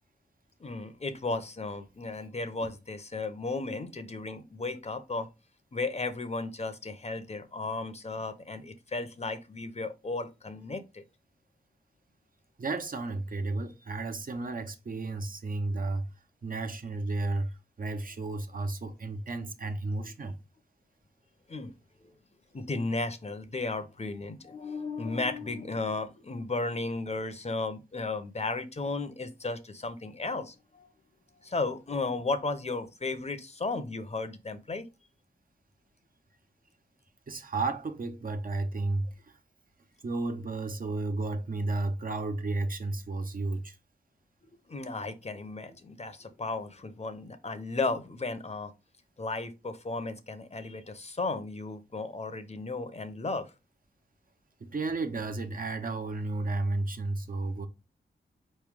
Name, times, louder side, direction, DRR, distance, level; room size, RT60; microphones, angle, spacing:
voice 1, 0.6-5.3 5.7-11.0 21.5-21.7 22.5-30.9 31.4-34.9 44.7-48.7 49.2-53.5, left 3 dB, 40° left, 0.8 m, -34 dB
voice 2, 12.6-16.1 16.4-20.3 37.3-39.4 40.0-43.8 54.6-57.7, right 2 dB, 55° right, 0.9 m, -33 dB
4.3 x 3.2 x 3.6 m
cardioid pair, 50°, 17 cm